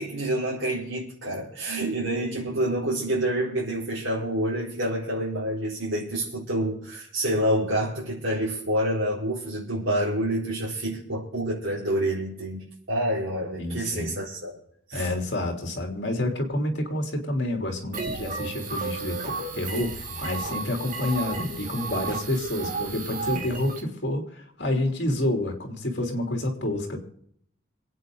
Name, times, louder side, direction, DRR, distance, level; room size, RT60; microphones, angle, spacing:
voice 1, 0.0-14.6 14.9-15.1, right 1 dB, 70° right, -7 dB, 4.7 m, -28 dB
voice 2, 13.6-14.1 14.9-27.0, left 1 dB, 55° left, 2 dB, 3.5 m, -28 dB
sound 1, 17.9-23.8, right 4 dB, 40° right, 2.2 m, -33 dB
26.5 x 9.2 x 4.0 m, 0.68 s
head